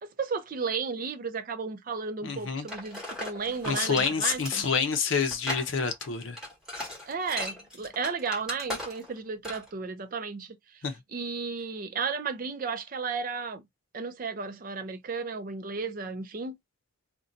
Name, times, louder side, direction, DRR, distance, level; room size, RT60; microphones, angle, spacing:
voice 1, 0.0-4.7 7.1-10.8 11.1-13.6 13.9-16.5, right 5 dB, 40° right, 0.4 m, -34 dB
voice 2, 2.2-2.7 3.7-6.4 10.8-11.0, left 5 dB, 70° left, 0.6 m, -28 dB
sound 1, 2.7-9.2 9.4-9.7, left 1 dB, 5° right, 1.2 m, -38 dB
2.6 x 2.2 x 3.8 m
head